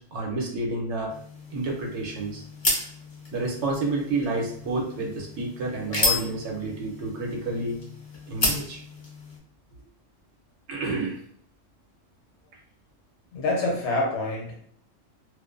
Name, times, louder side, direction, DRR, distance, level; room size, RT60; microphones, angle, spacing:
voice 1, 0.1-1.2 1.5-2.4 3.3-7.8 8.3-8.8 10.7-11.2, right 2 dB, 70° right, -1 dB, 0.9 m, -29 dB
sound 1, 1.1-9.4, left 2 dB, 40° left, 0.4 m, -32 dB
voice 2, 13.3-14.6, left 2 dB, 70° left, -1 dB, 0.9 m, -26 dB
2.4 x 2.1 x 2.4 m, 0.64 s
omnidirectional pair, 1.3 m